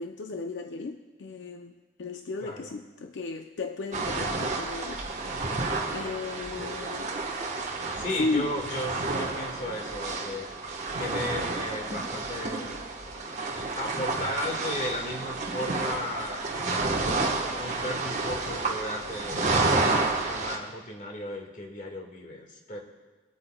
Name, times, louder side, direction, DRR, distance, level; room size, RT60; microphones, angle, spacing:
voice 1, 0.0-5.0 5.8-7.1 8.2-8.5, left 3 dB, 75° left, 5 dB, 0.5 m, -34 dB
voice 2, 2.4-2.7 8.0-10.5 11.0-12.7 13.7-17.2 17.5-22.8, left 1 dB, 45° left, 0 dB, 1.6 m, -35 dB
sound 1, 3.9-20.6, right 3 dB, 40° right, 1.1 m, -30 dB
23.0 x 8.7 x 2.2 m, 1.3 s
head